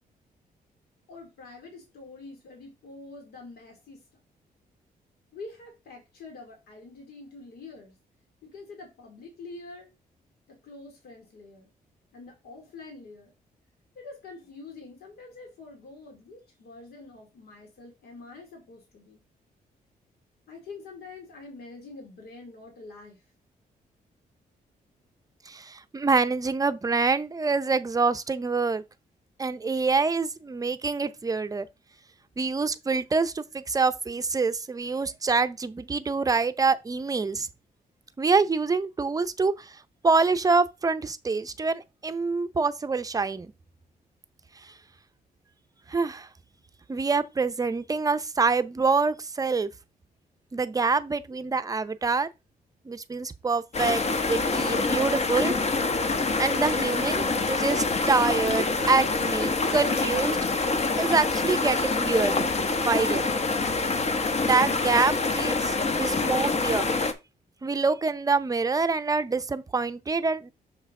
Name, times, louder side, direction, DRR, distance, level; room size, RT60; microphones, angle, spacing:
voice 1, 1.1-4.0 5.3-7.9 8.4-9.9 10.5-11.7 12.1-13.3 13.9-19.2 20.5-23.2, left 3 dB, 80° left, 2.5 m, -45 dB
voice 2, 25.5-28.8 29.4-31.7 32.4-37.5 38.2-43.5 44.6-44.7 45.9-46.3 46.9-49.7 50.5-52.3 52.9-55.5 56.4-60.4 61.0-62.5 62.8-63.3 64.4-66.9 67.6-70.5, right 4 dB, 20° right, 0.6 m, -26 dB
sound 1, 53.7-67.1, left 3 dB, 45° left, 1.0 m, -26 dB
6.6 x 5.5 x 3.7 m
cardioid pair, 105°, 16 cm